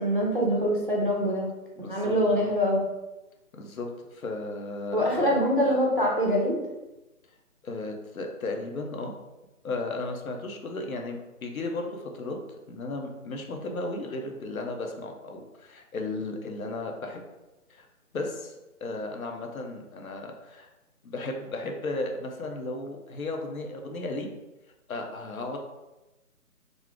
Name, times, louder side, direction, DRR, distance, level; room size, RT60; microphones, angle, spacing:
voice 1, 0.0-1.5 1.9-2.8 4.9-6.6, equal, 35° right, -3 dB, 0.5 m, -24 dB
voice 2, 1.8-2.5 3.5-5.3 7.6-9.1 9.6-12.4 12.7-17.2 17.7-17.9 18.1-18.5 18.8-20.7 21.0-24.3 24.9-25.6, left 2 dB, 65° left, 3 dB, 0.7 m, -35 dB
2.5 x 2.3 x 3.5 m, 1.0 s
figure-of-eight pair, 160°, 45 cm